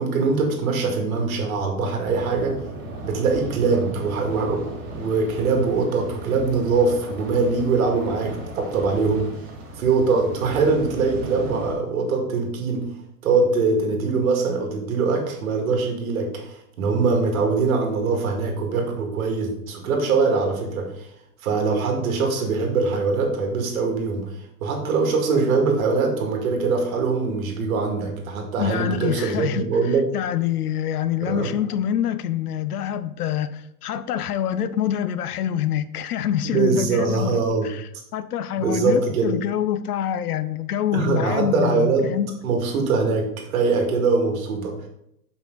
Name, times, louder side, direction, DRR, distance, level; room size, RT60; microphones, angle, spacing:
voice 1, 0.0-2.6 3.0-9.3 9.8-12.9 13.2-21.1 21.4-30.1 31.2-31.5 36.4-37.7 38.6-39.4 40.9-42.1 42.4-44.8, right 4 dB, 60° right, 2 dB, 2.1 m, -22 dB
sound 1, 2.0-11.7, right 2 dB, 40° right, 2.4 m, -36 dB
voice 2, 28.6-29.7 30.1-42.4, left 10 dB, 70° left, 13 dB, 0.8 m, -26 dB
7.0 x 5.5 x 3.8 m, 0.76 s
hypercardioid pair, 160°, 46 cm